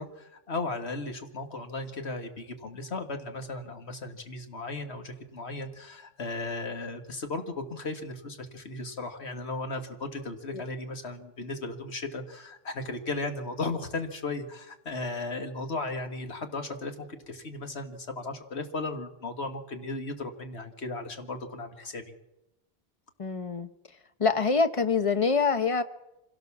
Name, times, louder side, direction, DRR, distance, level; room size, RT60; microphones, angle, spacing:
voice 1, 0.0-22.1, left 2 dB, 90° left, 6 dB, 2.1 m, -36 dB
voice 2, 23.2-23.7 24.2-25.8, left 5 dB, 35° left, 11 dB, 1.0 m, -25 dB
25.5 x 17.5 x 7.2 m, 0.91 s
omnidirectional pair, 1.1 m